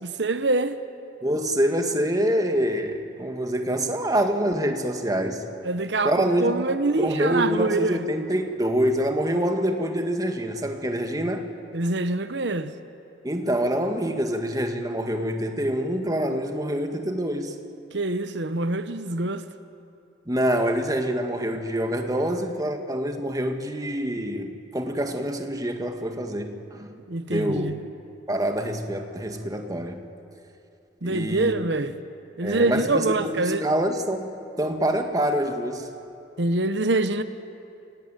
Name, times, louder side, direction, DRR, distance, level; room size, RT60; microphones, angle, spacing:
voice 1, 0.0-0.8 5.6-8.0 11.7-12.7 17.9-19.4 27.1-27.8 31.0-32.0 32.4-33.7 36.4-37.2, right 2 dB, 75° right, 1.1 m, -25 dB
voice 2, 1.2-5.4 6.0-11.5 13.2-17.6 20.3-26.9 27.3-27.7 28.3-30.0 31.0-31.5 32.4-34.3 34.6-35.9, equal, 20° right, 1.8 m, -26 dB
28.5 x 18.0 x 9.1 m
head